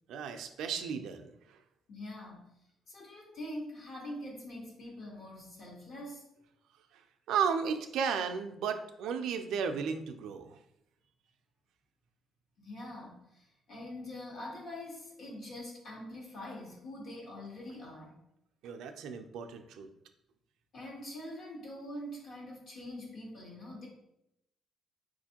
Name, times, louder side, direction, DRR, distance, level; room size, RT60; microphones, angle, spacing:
voice 1, 0.1-1.6 6.9-7.0 7.3-10.6 18.6-19.9, right 6 dB, 85° right, 7 dB, 0.3 m, -34 dB
voice 2, 1.9-2.5 2.9-6.3 12.6-18.2 20.7-23.9, left 1 dB, 55° left, -2 dB, 1.2 m, -44 dB
4.3 x 2.5 x 2.8 m, 0.83 s
cardioid pair, 115°, 0 cm